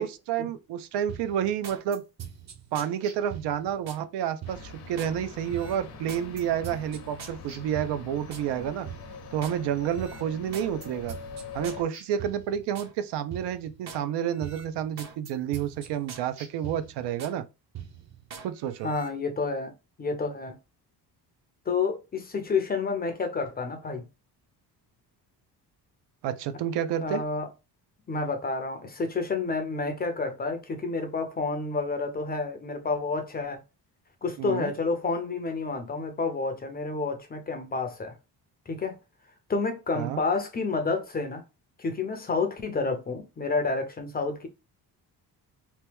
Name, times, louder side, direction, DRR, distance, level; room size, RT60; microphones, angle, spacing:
voice 1, 0.0-2.0 2.7-8.9 9.3-11.2 11.5-17.4 18.4-18.9 26.2-27.2 34.4-34.7 40.0-40.2, right 9 dB, 85° right, 0.5 m, -30 dB
sound 1, 1.1-4.0 4.4-5.2 5.5-8.5 8.9-9.6 9.9-12.9 13.3-14.0 14.4-17.4 17.7-18.5 18.8-19.1, right 8 dB, 40° right, 0.6 m, -43 dB
sound 2, 4.4-11.9, left 5 dB, 65° left, 0.7 m, -43 dB
voice 2, 18.8-19.7 20.0-20.6 21.7-24.0 27.0-27.5 28.1-33.6 34.2-38.1 38.7-39.0 39.5-41.4 41.8-44.5, left 4 dB, 25° left, 0.4 m, -29 dB
2.9 x 2.2 x 3.3 m
cardioid pair, 160°, 41 cm